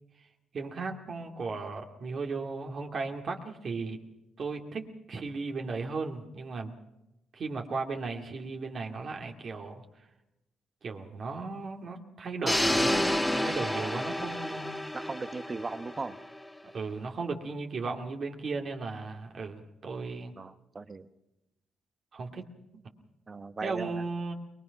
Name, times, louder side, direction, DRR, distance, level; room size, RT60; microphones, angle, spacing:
voice 1, 0.5-4.0 4.4-6.7 7.3-9.8 10.8-14.9 16.6-20.3 22.1-22.5 23.6-24.3, right 4 dB, 50° right, 2 dB, 2.5 m, -36 dB
sound 1, 12.5-16.5, left 1 dB, 10° left, 1.6 m, -30 dB
voice 2, 14.9-16.2 20.4-21.1 23.3-23.9, right 3 dB, 30° right, 11 dB, 1.2 m, -38 dB
23.0 x 21.5 x 5.9 m, 0.93 s
cardioid pair, 90°, 0 cm